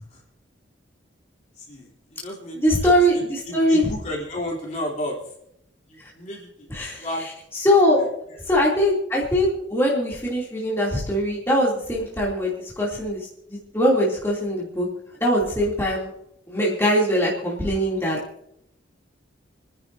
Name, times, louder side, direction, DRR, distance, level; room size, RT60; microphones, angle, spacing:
voice 1, 1.6-5.2 5.9-7.3, left 1 dB, 40° left, -3 dB, 3.4 m, -33 dB
voice 2, 2.5-3.9 6.7-8.0 8.5-13.2 13.5-14.9 15.2-16.1 16.5-18.2, equal, 15° left, -5 dB, 2.9 m, -22 dB
29.5 x 10.5 x 2.7 m, 0.76 s
head